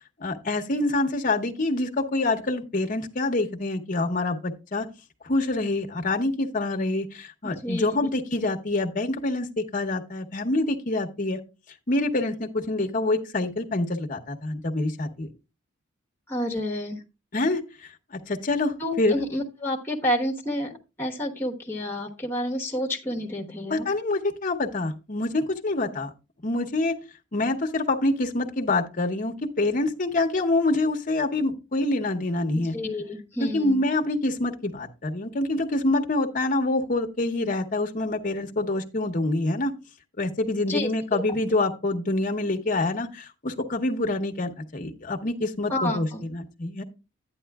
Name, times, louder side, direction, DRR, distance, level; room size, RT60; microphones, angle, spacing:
voice 1, 0.2-4.9 5.2-11.4 11.9-15.3 17.3-19.2 23.7-26.1 26.4-26.9 27.3-32.7 33.4-39.7 40.2-46.8, left 2 dB, 40° left, 3 dB, 0.8 m, -26 dB
voice 2, 7.4-8.1 16.3-17.0 18.8-20.7 21.0-23.9 32.7-33.8 40.7-41.4 45.7-46.2, left 1 dB, 10° left, 2 dB, 1.1 m, -29 dB
11.5 x 9.3 x 2.3 m, 0.29 s
head